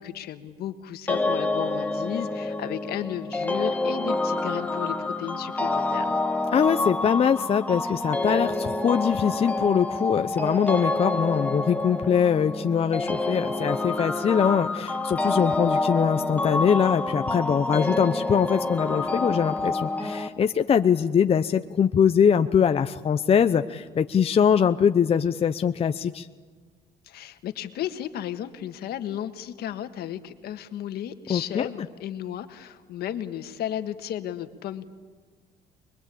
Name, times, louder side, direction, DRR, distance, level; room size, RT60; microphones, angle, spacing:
voice 1, 0.0-6.2 27.0-34.9, left 11 dB, 70° left, 8 dB, 1.7 m, -34 dB
sound 1, 1.1-20.3, left 2 dB, 10° left, 1.5 m, -28 dB
voice 2, 6.5-26.3 31.3-31.7, left 7 dB, 35° left, 8 dB, 0.7 m, -22 dB
24.5 x 22.0 x 8.6 m, 1.4 s
cardioid pair, 110°, 17 cm